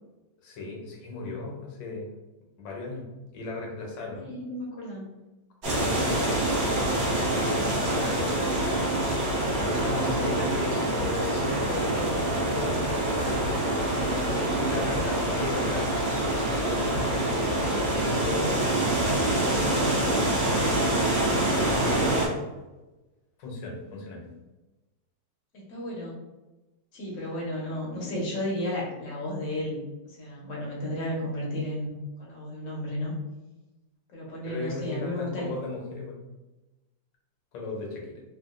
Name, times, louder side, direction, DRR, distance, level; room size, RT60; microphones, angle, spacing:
voice 1, 0.4-2.1 2.6-3.1 3.3-4.3 5.7-6.4 7.3-13.6 14.5-16.0 16.5-17.5 17.9-18.7 19.5-22.5 23.4-24.3 34.5-36.2 37.5-38.2, left 3 dB, 70° left, -1 dB, 1.4 m, -36 dB
voice 2, 4.1-5.1 13.9-14.4 25.5-26.1 26.9-29.8 30.0-31.9 32.2-33.1 34.1-35.5, left 1 dB, 50° left, -3 dB, 1.0 m, -33 dB
sound 1, 5.6-22.3, right 1 dB, 55° right, 1.3 m, -26 dB
3.6 x 2.3 x 2.4 m, 1.1 s
omnidirectional pair, 2.1 m